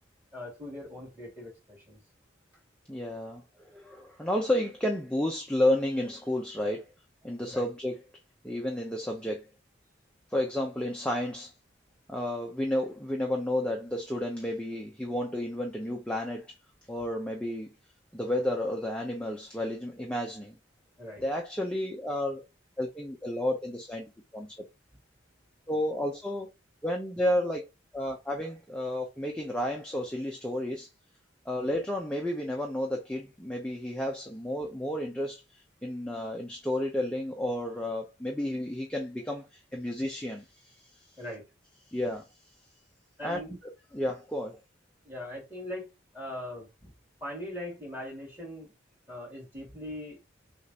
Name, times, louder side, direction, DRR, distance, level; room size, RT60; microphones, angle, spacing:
voice 1, 0.3-2.0 7.5-7.6 21.0-21.2 41.2-41.4 43.2-43.5 45.0-46.9 47.2-48.7 49.1-50.2, left 1 dB, 10° right, 2.7 m, -40 dB
voice 2, 2.9-6.9 7.2-8.0 8.4-9.5 10.3-11.5 12.1-16.5 16.9-17.7 18.1-20.6 21.2-22.4 22.8-24.1 24.3-24.7 25.7-26.5 26.8-27.7 27.9-30.9 31.5-41.1 41.9-42.3 43.2-43.4 43.9-44.6, left 1 dB, 5° left, 0.7 m, -31 dB
6.4 x 2.5 x 2.9 m
head